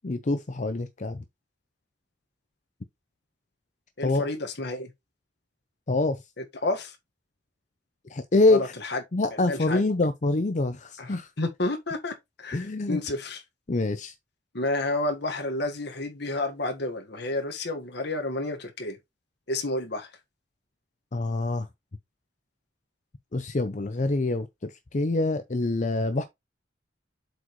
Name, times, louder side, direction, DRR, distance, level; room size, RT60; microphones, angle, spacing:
voice 1, 0.0-1.2 4.0-4.3 5.9-6.2 8.1-8.7 9.1-11.3 12.5-13.0 13.7-14.1 21.1-21.7 23.3-26.2, left 2 dB, 40° left, 0.6 m, -25 dB
voice 2, 4.0-4.9 6.6-6.9 8.5-9.0 9.5-9.8 11.0-13.4 14.5-19.0 19.5-20.1, left 2 dB, 60° left, 1.6 m, -30 dB
7.7 x 5.0 x 3.1 m
head